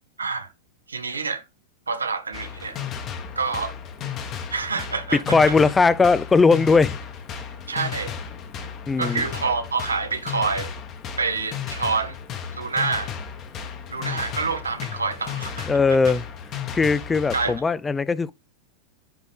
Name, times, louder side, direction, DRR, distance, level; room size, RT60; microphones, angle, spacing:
voice 1, 0.2-0.5 0.9-1.4 1.9-2.8 3.4-3.7 4.5-5.5 7.7-8.1 9.0-10.7 11.2-12.2 12.5-13.1 13.9-15.7 17.3-17.5, right 4 dB, 75° right, 1.0 m, -27 dB
sound 1, 2.3-17.6, left 7 dB, 35° left, 1.2 m, -34 dB
voice 2, 5.3-7.0 8.9-9.3 15.7-16.2 16.7-18.3, left 4 dB, 15° left, 0.4 m, -19 dB
10.5 x 3.9 x 3.4 m
figure-of-eight pair, 90°, 0 cm